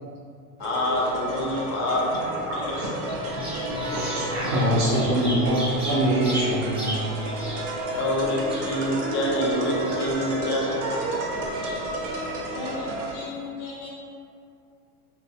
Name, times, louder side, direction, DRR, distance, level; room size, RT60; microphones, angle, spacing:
voice 1, 0.6-2.2 2.8-3.5 7.9-10.7, left 1 dB, 25° left, -3 dB, 0.4 m, -27 dB
sound 1, 0.6-13.1, right 1 dB, 85° right, 0.6 m, -31 dB
voice 2, 2.5-7.1, right 1 dB, 40° right, -8 dB, 0.4 m, -25 dB
Bird vocalization bird call bird song, 3.2-12.2, equal, 10° right, 0.8 m, -38 dB
voice 3, 12.5-13.9, left 3 dB, 85° left, -4 dB, 0.6 m, -36 dB
2.1 x 2.1 x 3.4 m, 2.5 s
supercardioid pair, 120°, 44 cm